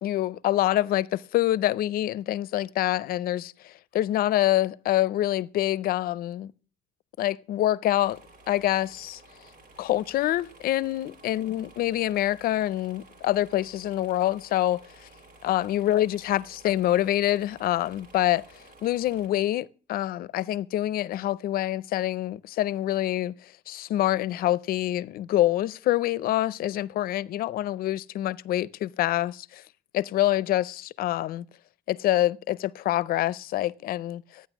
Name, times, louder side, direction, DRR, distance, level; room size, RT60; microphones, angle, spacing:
voice 1, 0.0-6.5 7.2-8.2 8.5-9.2 9.8-14.8 15.4-18.4 18.8-23.3 23.7-29.6 29.9-31.4 31.9-34.4, left 14 dB, 70° left, 0.5 m, -26 dB
sound 1, 8.0-19.3, right 2 dB, 55° right, 2.4 m, -53 dB
12.5 x 9.5 x 6.0 m
cardioid pair, 155°, 16 cm